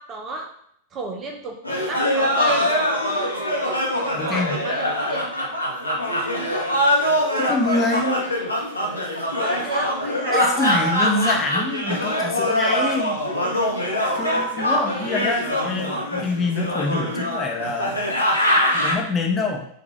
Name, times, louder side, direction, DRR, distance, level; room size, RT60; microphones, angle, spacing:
voice 1, 0.1-0.5 0.9-1.6 1.9-2.7 4.3-5.3 9.4-10.5 14.1-15.3, right 2 dB, 30° right, 3 dB, 0.7 m, -33 dB
sound 1, 1.6-18.9, equal, 85° left, 1.0 m, -23 dB
voice 2, 4.1-4.6 7.4-8.3 10.3-13.2 14.1-18.1 18.7-19.7, left 3 dB, 20° left, 1 dB, 0.9 m, -25 dB
6.1 x 2.5 x 3.2 m, 0.69 s
figure-of-eight pair, 90°, 0 cm